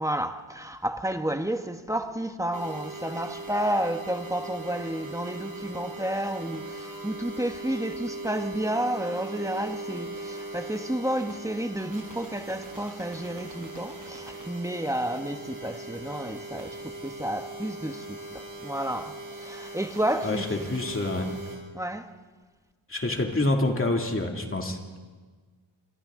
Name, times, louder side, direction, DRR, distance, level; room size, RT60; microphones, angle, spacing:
voice 1, 0.0-20.6 21.7-22.1, right 1 dB, 5° right, 1.0 m, -31 dB
sound 1, 2.5-21.6, right 2 dB, 40° right, 7.1 m, -40 dB
voice 2, 20.2-21.3 22.9-24.8, left 2 dB, 25° left, 2.3 m, -27 dB
29.0 x 25.5 x 3.7 m
wide cardioid pair, 130°, 49 cm